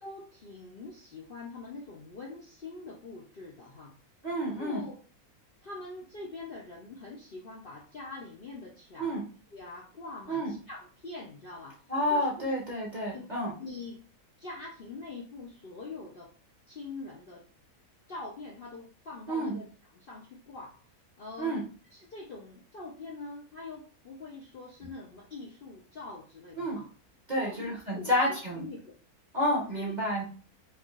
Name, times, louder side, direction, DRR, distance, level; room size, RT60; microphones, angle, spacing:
voice 1, 0.0-3.9 4.6-5.0 5.6-9.2 9.5-11.8 12.1-12.5 13.1-13.3 13.6-14.0 14.4-16.3 16.7-17.4 18.1-19.6 19.9-20.8 21.2-21.6 21.9-26.8 27.4-28.9 29.7-30.0, left 3 dB, 50° left, -3 dB, 0.7 m, -44 dB
voice 2, 4.2-4.8 9.0-9.3 10.3-10.5 11.9-13.5 19.3-19.6 21.4-21.6 26.6-26.8 27.3-28.6 29.3-30.2, equal, 35° right, -3 dB, 0.9 m, -30 dB
4.6 x 2.4 x 2.4 m, 0.38 s
omnidirectional pair, 1.6 m